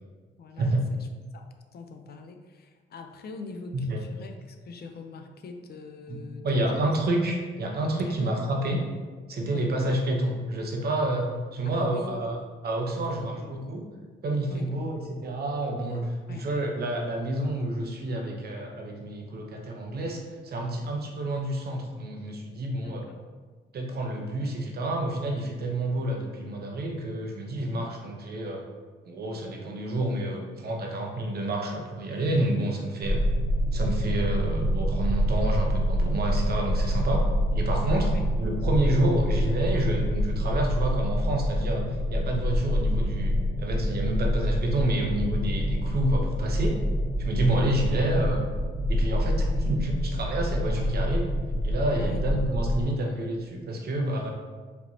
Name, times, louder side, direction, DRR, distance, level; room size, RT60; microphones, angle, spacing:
voice 1, 0.4-1.1 1.3-1.4 1.7-6.9 7.9-8.2 9.5-9.7 11.7-12.4 13.1-13.5 14.5-14.7 16.3-16.5 22.8-23.2 27.7-28.0 38.0-38.3 47.4-47.7 52.0-52.3, left 4 dB, 55° left, 5 dB, 0.5 m, -43 dB
voice 2, 6.1-8.8 9.3-12.4 12.6-13.8 14.2-23.1 23.7-28.6 29.0-33.2 33.7-37.3 37.5-41.8 42.1-46.8 47.2-48.4 48.9-51.3 51.6-54.3, right 1 dB, 50° right, 1 dB, 0.9 m, -29 dB
sound 1, 33.0-52.8, equal, 35° left, 1.1 m, -26 dB
5.0 x 3.4 x 2.8 m, 1.4 s
cardioid pair, 90°, 20 cm